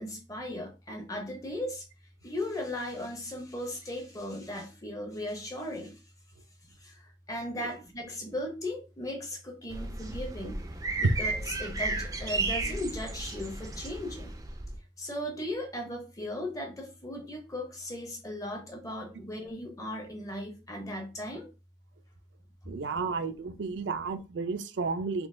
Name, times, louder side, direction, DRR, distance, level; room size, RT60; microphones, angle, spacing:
voice 1, 0.0-1.9 2.2-6.0 6.8-10.6 11.0-14.3 15.0-21.5, left 1 dB, 20° left, 0.6 m, -37 dB
sound 1, 9.7-14.8, right 3 dB, 20° right, 0.4 m, -34 dB
voice 2, 22.7-25.3, right 4 dB, 80° right, 0.4 m, -32 dB
3.8 x 2.9 x 2.5 m
head